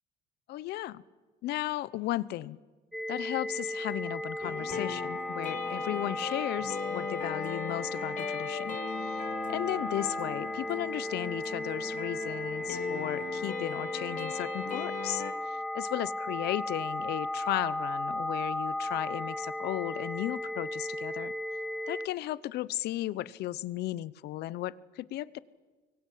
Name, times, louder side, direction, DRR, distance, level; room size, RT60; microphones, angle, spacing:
voice 1, 0.5-1.0 1.4-2.6 3.1-8.8 9.1-9.2 9.5-21.3 21.9-25.4, left 15 dB, 75° left, 19 dB, 0.8 m, -35 dB
sound 1, 2.9-22.1, left 1 dB, ahead, 0.8 m, -35 dB
sound 2, 4.4-15.3, left 6 dB, 50° left, 2.7 m, -39 dB
25.0 x 23.0 x 8.5 m, 1.3 s
cardioid pair, 110°, 17 cm